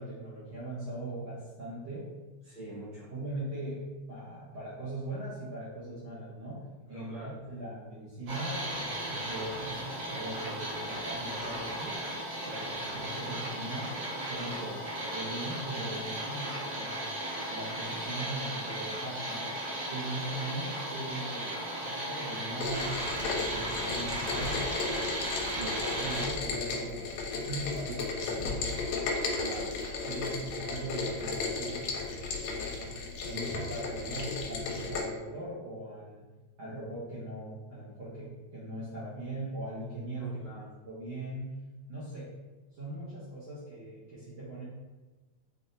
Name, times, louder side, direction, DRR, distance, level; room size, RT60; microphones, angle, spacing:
voice 1, 0.0-2.1 2.6-2.8 3.1-6.6 6.9-7.1 7.5-9.8 10.1-12.0 12.5-13.9 14.3-14.7 15.0-17.1 17.5-19.4 19.9-21.5 21.8-24.7 25.6-28.6 30.0-32.8 33.2-36.2 36.6-40.4 40.8-41.6 41.9-42.3 42.7-44.7, right 1 dB, 65° right, -10 dB, 1.3 m, -40 dB
voice 2, 2.4-3.1 6.9-7.7 14.6-14.7 25.5-25.8 29.3-29.7 30.2-30.5 40.1-40.7, right 2 dB, 60° left, -13 dB, 0.7 m, -45 dB
sound 1, 8.3-26.3, right 1 dB, 85° right, 2.9 m, -36 dB
Rain, 22.6-35.0, left 3 dB, 85° left, 2.0 m, -34 dB
5.6 x 2.4 x 2.6 m, 1.2 s
omnidirectional pair, 3.3 m